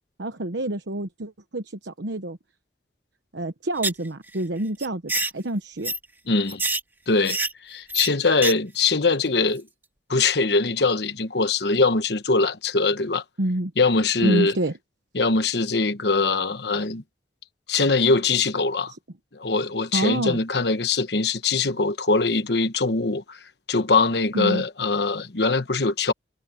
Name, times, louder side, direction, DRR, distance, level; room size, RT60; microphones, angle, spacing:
voice 1, 0.2-2.4 3.3-5.9 13.4-13.7 14.2-14.7 19.9-20.4 24.3-24.6, right 1 dB, 80° right, 1.1 m, -27 dB
sound 1, 3.8-4.1 4.3-4.4 4.8-5.3 5.8-6.0 6.5-6.8 7.2-7.5 7.9-8.1 8.4-8.5 8.8-8.9, right 2 dB, 10° right, 2.0 m, -25 dB
voice 2, 6.3-6.6 7.1-9.7 10.1-13.2 13.8-14.5 15.1-17.0 17.7-18.9 19.3-23.4 23.7-26.1, left 3 dB, 65° left, 1.1 m, -22 dB
head